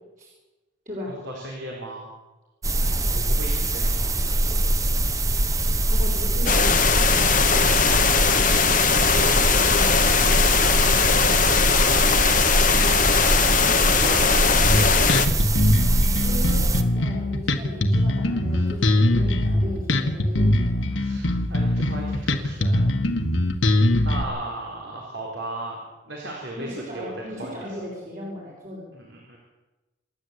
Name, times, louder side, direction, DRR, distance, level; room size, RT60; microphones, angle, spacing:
voice 1, 1.2-2.1 2.7-4.8 10.7-11.0 11.8-15.1 18.5-18.8 20.9-22.9 24.0-25.8 26.0-27.1 27.4-27.6 28.9-29.4, right 1 dB, 70° right, -2 dB, 4.4 m, -37 dB
sound 1, 2.6-16.8, right 1 dB, 15° right, 1.0 m, -23 dB
voice 2, 5.9-6.8 9.1-10.0 16.2-20.8 26.5-28.9, left 1 dB, 40° right, -5 dB, 6.1 m, -36 dB
sound 2, 6.5-15.3, left 6 dB, 40° left, 1.3 m, -20 dB
Bass guitar, 14.6-24.2, left 1 dB, 80° left, 1.9 m, -22 dB
27.5 x 11.5 x 8.4 m, 1.1 s
head